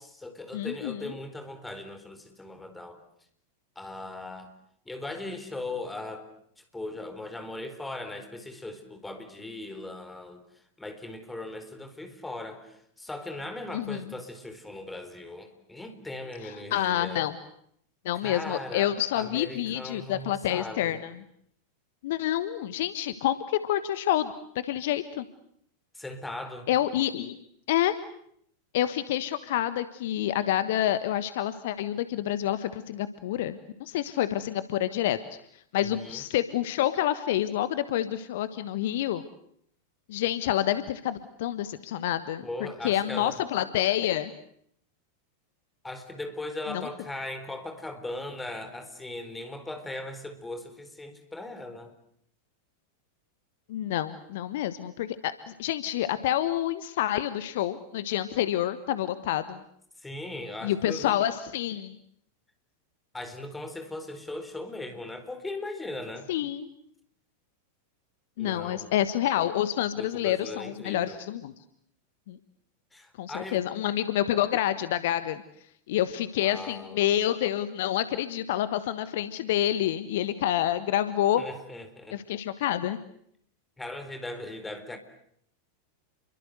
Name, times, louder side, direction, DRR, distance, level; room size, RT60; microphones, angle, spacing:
voice 1, 0.0-3.0 3.8-4.5 4.9-6.3 6.6-17.2 18.2-21.0 25.9-26.7 35.8-36.2 42.4-43.4 45.8-51.9 60.0-61.2 63.1-66.3 68.4-68.9 70.0-71.2 72.9-73.6 76.4-77.1 81.4-82.2 83.8-85.0, left 2 dB, 10° left, 7 dB, 4.3 m, -39 dB
voice 2, 0.5-1.1 13.7-14.0 16.4-17.4 18.0-21.0 22.0-24.3 24.6-25.2 26.7-27.4 27.7-28.0 28.7-35.2 35.7-39.2 40.1-42.5 42.8-44.3 46.7-46.8 53.7-59.6 60.6-62.0 66.3-66.7 68.4-71.5 72.3-72.4 73.2-75.4 75.9-81.4 82.1-83.0, left 12 dB, 55° left, 13 dB, 1.3 m, -28 dB
30.0 x 23.5 x 8.0 m, 0.69 s
figure-of-eight pair, 90°, 0 cm